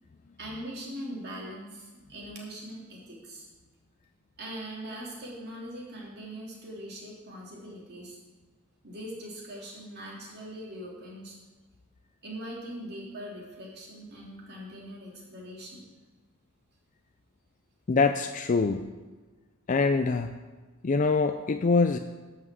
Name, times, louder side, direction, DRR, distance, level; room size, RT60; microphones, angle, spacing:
voice 1, 0.4-3.5 4.4-8.2 8.8-11.4 12.2-15.8, right 1 dB, 50° right, -3 dB, 3.2 m, -41 dB
voice 2, 17.9-18.9 19.7-20.3 20.8-22.0, left 4 dB, 35° left, 7 dB, 0.4 m, -24 dB
11.0 x 5.9 x 7.6 m, 1.3 s
head